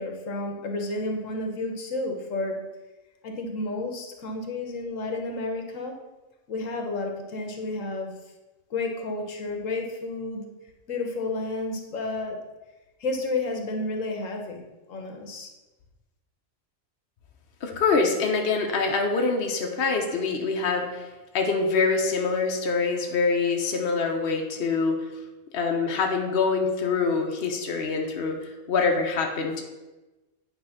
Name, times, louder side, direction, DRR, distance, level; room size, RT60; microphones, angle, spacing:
voice 1, 0.0-2.6 3.2-5.9 6.5-8.1 8.7-10.5 10.9-12.4 13.0-14.6 14.9-15.5, left 2 dB, 70° left, 3 dB, 1.3 m, -31 dB
voice 2, 17.6-21.1 21.3-25.0 25.5-29.6, left 4 dB, 50° left, 2 dB, 1.0 m, -25 dB
9.1 x 3.4 x 5.7 m, 1.1 s
omnidirectional pair, 1.4 m